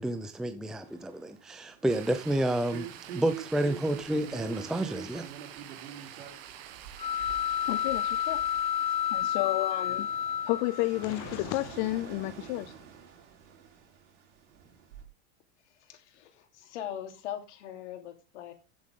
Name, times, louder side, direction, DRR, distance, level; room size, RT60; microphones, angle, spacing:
voice 1, 0.0-2.9 3.1-5.3, right 1 dB, ahead, 0.5 m, -30 dB
sound 1, 0.8-15.0, right 8 dB, 90° right, 4.0 m, -47 dB
sound 2, 1.9-12.2, right 11 dB, 60° right, 1.9 m, -49 dB
sound 3, 7.0-11.1, left 10 dB, 15° left, 1.0 m, -30 dB
voice 2, 7.6-8.5 8.9-10.1 10.4-12.7, left 19 dB, 45° left, 0.5 m, -31 dB
voice 3, 15.6-18.5, left 10 dB, 80° left, 3.2 m, -41 dB
15.0 x 7.8 x 3.7 m
supercardioid pair, 150°, 34 cm